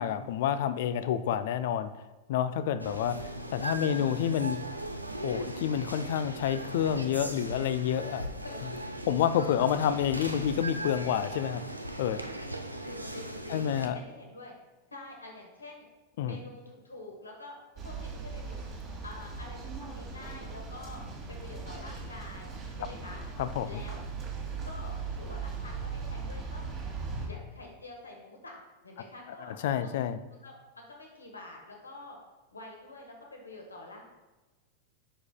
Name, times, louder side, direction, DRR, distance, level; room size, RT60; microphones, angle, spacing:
voice 1, 0.0-2.0 2.3-4.6 5.2-8.2 9.1-11.6 12.0-12.2 13.5-14.0 16.2-16.4 23.4-23.7 29.6-30.2, left 9 dB, 55° left, 12 dB, 0.4 m, -29 dB
sound 1, 2.8-13.9, right 1 dB, 85° right, 0.4 m, -38 dB
voice 2, 3.8-4.3 8.4-8.6 9.6-10.0 12.8-14.5 14.9-15.9 16.2-17.6 17.8-18.6 19.0-21.0 21.3-23.2 23.6-24.0 24.6-26.6 27.2-28.6 28.8-29.6 29.8-30.0 30.4-32.2 32.5-34.1, left 2 dB, 80° left, 1 dB, 1.3 m, -47 dB
sound 2, 17.8-27.3, right 4 dB, 35° right, 1.4 m, -39 dB
9.9 x 4.8 x 2.2 m, 1.2 s
figure-of-eight pair, 90°, 0 cm